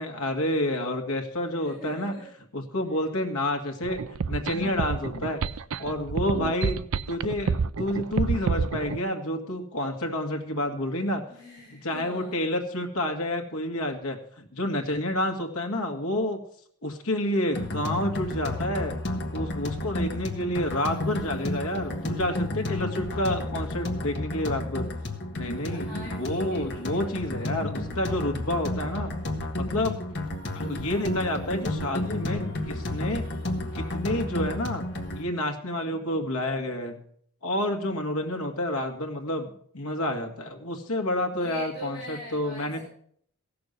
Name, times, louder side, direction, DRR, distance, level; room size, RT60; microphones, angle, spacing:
voice 1, 0.0-2.1 2.5-4.0 4.3-5.4 5.8-6.8 7.1-11.2 11.7-16.4 16.8-19.0 19.3-24.9 25.3-29.1 29.5-30.0 30.5-33.3 33.8-34.8 35.1-37.0 37.4-42.8, left 1 dB, 80° left, 5 dB, 2.0 m, -29 dB
voice 2, 1.6-2.2 11.3-12.4 25.6-27.1 41.3-42.8, left 2 dB, 20° left, -9 dB, 6.0 m, -43 dB
sound 1, 3.8-9.0, right 5 dB, 70° right, 0.5 m, -28 dB
sound 2, 17.5-35.2, left 1 dB, 50° left, 1.6 m, -32 dB
16.0 x 6.9 x 6.8 m, 0.64 s
head